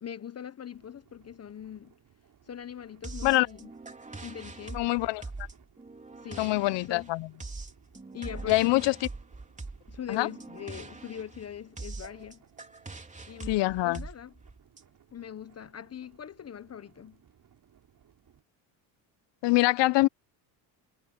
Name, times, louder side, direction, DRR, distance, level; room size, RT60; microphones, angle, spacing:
voice 1, 0.0-1.9 2.5-3.7 4.2-4.9 6.2-7.1 8.1-8.8 9.9-12.4 13.3-14.3 15.1-17.2, left 9 dB, 30° left, 1.1 m, -42 dB
sound 1, 0.7-18.4, right 8 dB, 40° right, 6.1 m, -63 dB
sound 2, 3.0-14.8, right 3 dB, 15° right, 3.7 m, -43 dB
voice 2, 4.7-5.5 6.4-7.3 8.5-8.9 10.1-10.3 13.5-14.0 19.4-20.1, left 19 dB, 60° left, 0.9 m, -24 dB
supercardioid pair, 100°, 48 cm